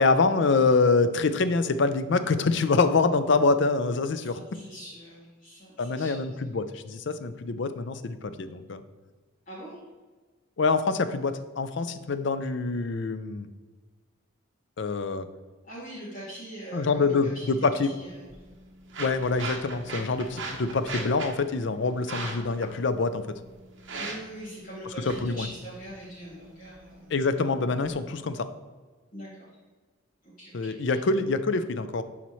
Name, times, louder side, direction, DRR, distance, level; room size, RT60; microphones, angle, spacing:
voice 1, 0.0-4.4 5.8-8.8 10.6-13.5 14.8-15.3 16.7-17.9 19.0-23.2 25.0-25.5 27.1-28.5 30.5-32.0, left 3 dB, 55° left, 11 dB, 0.5 m, -25 dB
voice 2, 4.2-6.4 9.5-9.8 15.6-18.3 24.0-27.1 29.1-29.5 30.2-30.8, right 1 dB, 40° left, -10 dB, 2.3 m, -43 dB
sound 1, 17.9-27.9, right 3 dB, 60° right, 1.2 m, -40 dB
11.0 x 4.3 x 3.1 m, 1.3 s
head